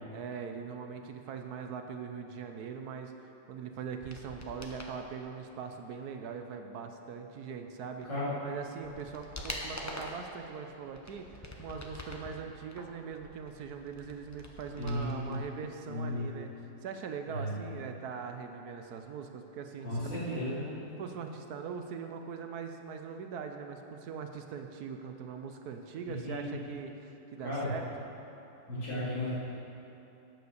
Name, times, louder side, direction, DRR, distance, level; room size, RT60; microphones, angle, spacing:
voice 1, 0.1-8.1 8.4-16.5 16.8-20.4 21.0-27.9, right 6 dB, 70° right, 5 dB, 1.1 m, -41 dB
sound 1, 4.0-5.0 8.0-8.1 8.6-10.3 10.8-12.3 12.7-15.4 15.6-15.7, left 1 dB, 20° left, 0.4 m, -44 dB
voice 2, 8.0-8.4 14.8-15.4 15.8-16.3 17.3-17.6 19.8-20.6 26.1-26.6 27.4-27.7 28.7-29.3, left 1 dB, 85° left, -9 dB, 3.9 m, -34 dB
9.5 x 8.0 x 6.5 m, 2.9 s
omnidirectional pair, 1.9 m